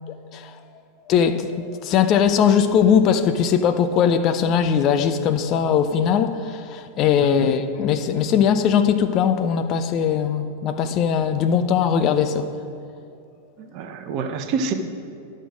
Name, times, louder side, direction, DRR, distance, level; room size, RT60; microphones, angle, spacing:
voice 1, 1.1-12.5, left 7 dB, 35° left, 9 dB, 0.5 m, -20 dB
voice 2, 13.6-14.7, right 5 dB, 40° right, 8 dB, 0.7 m, -27 dB
11.0 x 6.4 x 5.0 m, 2.5 s
figure-of-eight pair, 90°, 0 cm